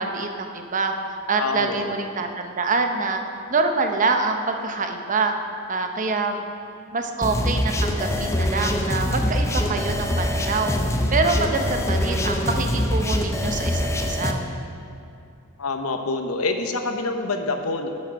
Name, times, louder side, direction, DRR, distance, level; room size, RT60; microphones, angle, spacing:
voice 1, 0.0-3.2 3.5-5.3 5.7-6.4 6.9-10.7 11.1-14.4, right 3 dB, 40° right, 5 dB, 0.7 m, -25 dB
voice 2, 1.4-1.9 15.6-17.9, left 3 dB, 80° left, 6 dB, 0.8 m, -26 dB
sound 1, 7.2-14.3, left 1 dB, 15° left, 0.6 m, -24 dB
10.5 x 6.2 x 6.2 m, 2.5 s
head